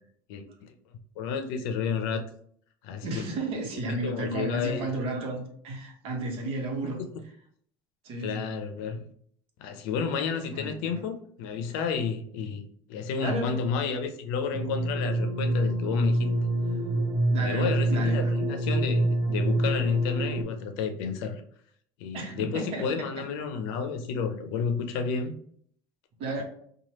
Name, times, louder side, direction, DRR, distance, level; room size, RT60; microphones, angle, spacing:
voice 1, 1.2-2.2 2.8-3.1 4.0-4.9 8.2-9.1 9.6-16.3 17.3-21.4 22.0-25.3, left 6 dB, 75° left, 0.6 m, -31 dB
voice 2, 3.0-7.0 8.0-8.5 10.5-11.0 13.2-13.6 17.3-18.3 22.1-23.2 26.2-26.4, right 2 dB, 60° right, 1.0 m, -33 dB
sound 1, 14.5-20.4, right 1 dB, 30° right, 0.7 m, -26 dB
3.1 x 2.3 x 2.8 m
supercardioid pair, 95°, 11 cm